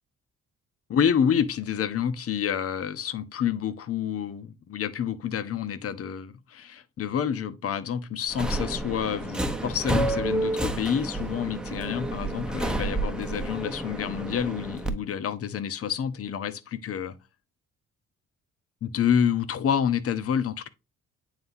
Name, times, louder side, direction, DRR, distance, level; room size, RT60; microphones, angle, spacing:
voice 1, 0.9-17.1 18.8-20.7, left 8 dB, 50° left, 0.9 m, -28 dB
Subway metro underground, 8.3-14.9, right 1 dB, 5° right, 0.9 m, -30 dB
9.0 x 4.1 x 2.7 m
cardioid pair, 90°, 30 cm